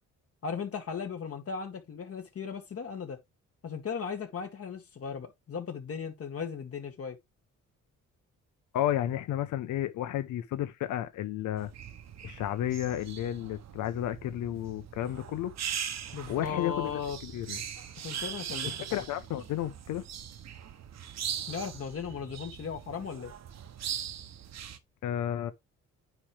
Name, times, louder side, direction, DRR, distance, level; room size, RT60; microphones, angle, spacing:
voice 1, 0.4-3.2 3.6-7.2 16.1-17.2 18.0-19.0 21.5-23.3, left 6 dB, 50° left, 2.2 m, -37 dB
voice 2, 8.7-11.7 12.2-15.5 16.3-17.6 18.6-20.0 25.0-25.5, left 12 dB, 80° left, 1.1 m, -32 dB
sound 1, 11.6-24.8, right 9 dB, 60° right, 1.2 m, -40 dB
9.6 x 3.3 x 4.9 m
cardioid pair, 90°, 30 cm